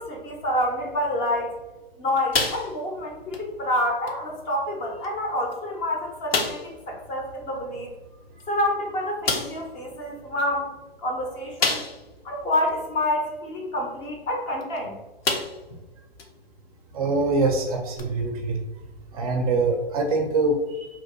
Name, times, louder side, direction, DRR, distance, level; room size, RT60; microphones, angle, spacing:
voice 1, 0.0-1.5 2.0-7.9 8.4-11.9 12.2-14.9, left 1 dB, 20° left, 0 dB, 0.5 m, -28 dB
sound 1, 2.3-3.0 3.3-3.5 4.1-4.2 5.0-5.1 5.5-5.6 6.3-6.7 8.4-8.5 9.3-9.7 11.6-12.2 12.7-12.8 14.6-14.8 15.2-15.7 16.2-16.3 18.0-18.1, left 4 dB, 75° left, 0.6 m, -27 dB
voice 2, 16.9-18.6 19.1-20.9, right 3 dB, 40° right, 3 dB, 0.4 m, -24 dB
3.0 x 2.5 x 2.6 m, 1.0 s
figure-of-eight pair, 115°, 31 cm